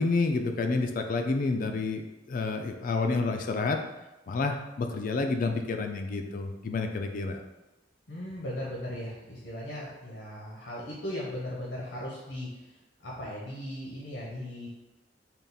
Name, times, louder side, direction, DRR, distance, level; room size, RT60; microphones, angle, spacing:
voice 1, 0.0-3.8 4.3-7.4, left 3 dB, 50° left, 5 dB, 0.4 m, -29 dB
voice 2, 8.1-12.7 13.0-14.7, left 1 dB, 65° left, -4 dB, 0.8 m, -37 dB
3.6 x 2.4 x 4.0 m, 1.0 s
head